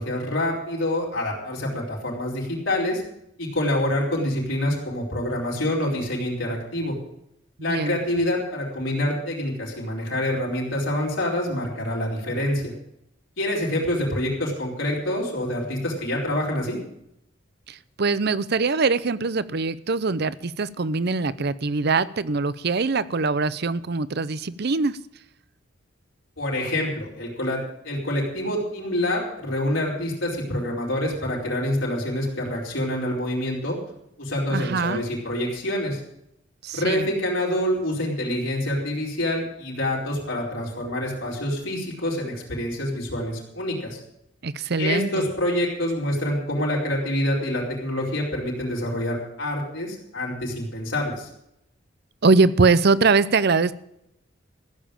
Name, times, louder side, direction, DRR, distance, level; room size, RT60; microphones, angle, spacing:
voice 1, 0.0-3.0 3.4-7.0 7.6-12.7 13.4-16.8 26.4-33.8 34.2-36.0 36.7-44.0 44.8-51.3, left 1 dB, 80° left, 4.4 m, -26 dB
voice 2, 7.6-8.0 17.7-25.0 34.5-35.0 36.6-37.1 44.4-45.3 52.2-53.7, right 4 dB, 55° right, 0.6 m, -22 dB
15.0 x 7.3 x 8.9 m
head